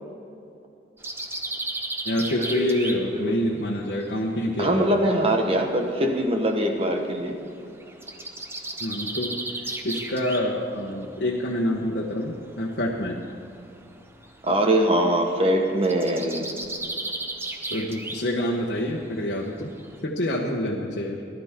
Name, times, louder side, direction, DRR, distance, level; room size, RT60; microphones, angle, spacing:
sound 1, 1.0-5.3 5.6-11.8 12.1-20.0, right 2 dB, 15° right, 0.8 m, -35 dB
voice 1, 2.0-5.0 8.8-13.3 17.7-19.7 20.0-21.2, left 1 dB, 75° left, -3 dB, 1.2 m, -27 dB
voice 2, 4.6-7.4 14.4-16.5, right 1 dB, 35° right, 3 dB, 1.3 m, -22 dB
19.0 x 12.0 x 3.7 m, 2.7 s
head